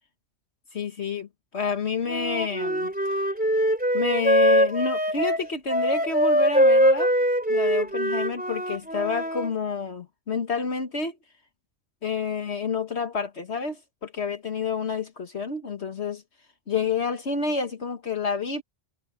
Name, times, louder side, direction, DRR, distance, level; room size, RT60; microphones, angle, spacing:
voice 1, 0.7-1.3 1.5-2.9 3.9-7.1 7.5-11.2 12.0-16.2 16.7-18.6, left 5 dB, 60° left, 1.7 m, -29 dB
Wind instrument woodwind instrument, 2.1-9.5, equal, 5° right, 3.4 m, -22 dB
omnidirectional pair, 1.3 m